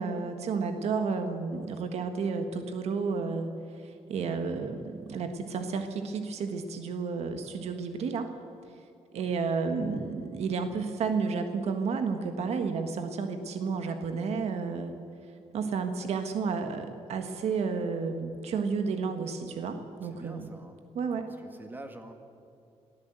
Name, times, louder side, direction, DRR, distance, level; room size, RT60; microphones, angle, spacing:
voice 1, 0.0-8.3 9.1-14.9 15.5-20.5 20.9-21.3, right 5 dB, 70° right, 7 dB, 1.5 m, -31 dB
voice 2, 20.0-20.8 21.4-22.1, right 1 dB, 15° right, 6 dB, 1.9 m, -46 dB
22.5 x 15.5 x 8.0 m, 2.4 s
cardioid pair, 130°, 11 cm